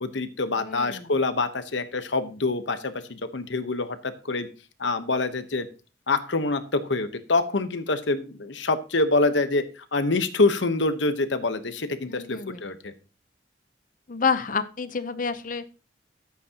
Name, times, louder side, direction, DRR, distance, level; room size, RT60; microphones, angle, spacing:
voice 1, 0.0-4.5 4.8-5.7 6.1-12.9, left 3 dB, 75° left, 10 dB, 1.1 m, -26 dB
voice 2, 0.6-1.1 12.1-12.6 14.1-15.7, left 5 dB, 45° left, 12 dB, 0.7 m, -29 dB
13.5 x 8.3 x 2.9 m, 0.34 s
head